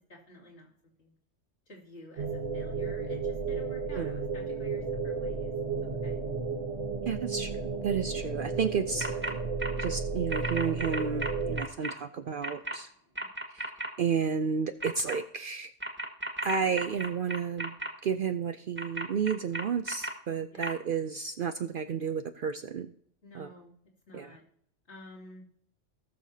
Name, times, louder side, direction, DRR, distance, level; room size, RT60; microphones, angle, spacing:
voice 1, 0.1-0.7 1.0-1.1 1.7-2.3 2.5-5.5 6.0-6.2 12.7-13.3 20.5-20.7 23.2-23.7 24.1-24.4 24.9-25.4, left 1 dB, 60° left, -4 dB, 2.9 m, -50 dB
sound 1, 2.2-11.6, right 4 dB, 75° right, 2.0 m, -33 dB
voice 2, 7.1-9.2 9.8-12.9 13.5-13.7 14.0-15.7 16.4-17.8 18.0-22.9 23.3-23.5 24.1-24.4, right 6 dB, 55° right, 8 dB, 0.6 m, -32 dB
sound 2, 9.0-9.3 9.6-9.9 10.3-11.9 12.4-12.7 13.1-13.9 14.8-15.1 15.8-17.9 18.8-20.1 20.6-20.7, right 1 dB, 10° right, 1.6 m, -34 dB
18.5 x 6.6 x 2.8 m, 0.65 s
omnidirectional pair, 1.3 m